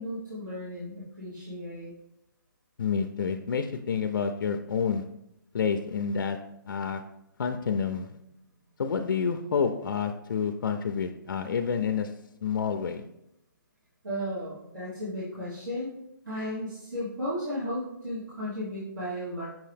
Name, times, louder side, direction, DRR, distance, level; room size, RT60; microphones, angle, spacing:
voice 1, 0.0-1.9 14.0-15.9 16.2-19.5, equal, 60° right, -9 dB, 1.5 m, -34 dB
voice 2, 2.8-5.0 5.5-6.4 6.7-7.0 7.4-8.1 8.8-12.1 12.4-13.0, left 6 dB, 70° left, 7 dB, 0.4 m, -28 dB
5.5 x 2.7 x 3.4 m, 0.82 s
hypercardioid pair, 175°, 11 cm